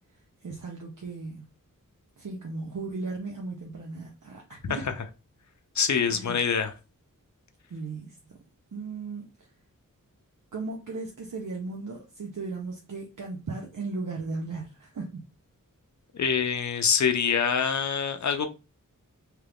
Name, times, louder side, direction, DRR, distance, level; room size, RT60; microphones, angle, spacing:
voice 1, 0.4-1.5 2.2-4.8 6.1-6.4 7.7-8.4 8.7-9.5 10.5-15.2, right 3 dB, 65° right, 0.7 m, -36 dB
voice 2, 5.7-6.7 16.1-18.5, left 6 dB, 60° left, 0.6 m, -25 dB
3.0 x 2.4 x 3.4 m
wide cardioid pair, 60°, 33 cm